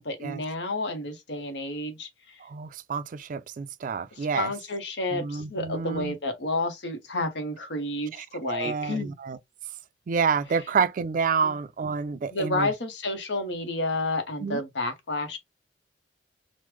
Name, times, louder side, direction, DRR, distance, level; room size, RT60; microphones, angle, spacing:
voice 1, 0.0-2.4 4.1-9.1 11.4-11.5 12.3-15.4, left 2 dB, 75° left, 0.9 m, -30 dB
voice 2, 2.4-4.5 5.1-6.2 8.2-9.4 10.1-12.7 14.4-14.6, right 5 dB, 50° right, 0.3 m, -28 dB
3.1 x 2.1 x 3.3 m
head